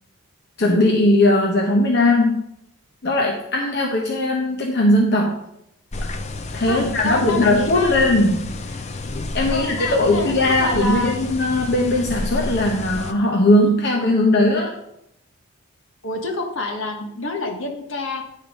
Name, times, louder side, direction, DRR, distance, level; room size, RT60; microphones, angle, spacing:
voice 1, 0.6-2.4 3.0-5.3 6.5-8.8 9.3-14.7, left 1 dB, 50° left, 0 dB, 0.9 m, -19 dB
sound 1, 5.9-13.1, left 2 dB, 30° left, 0.5 m, -30 dB
voice 2, 6.7-7.9 9.5-11.2 16.0-18.2, left 2 dB, 65° left, 3 dB, 1.3 m, -27 dB
9.6 x 4.3 x 5.1 m, 0.78 s
head